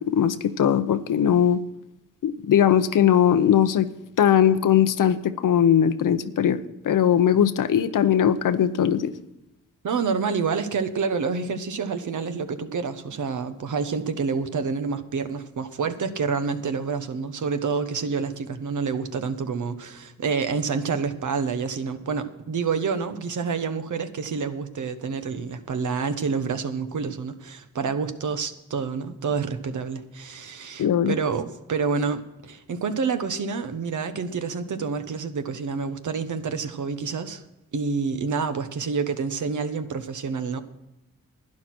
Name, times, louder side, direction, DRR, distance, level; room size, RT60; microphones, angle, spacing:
voice 1, 0.1-1.6 2.2-3.9 4.2-6.6 6.8-9.1 30.8-31.2, left 9 dB, 75° left, 12 dB, 0.8 m, -20 dB
voice 2, 9.8-37.4 37.7-40.6, right 5 dB, 70° right, 9 dB, 1.1 m, -28 dB
12.0 x 9.6 x 6.1 m, 0.90 s
cardioid pair, 50°, 32 cm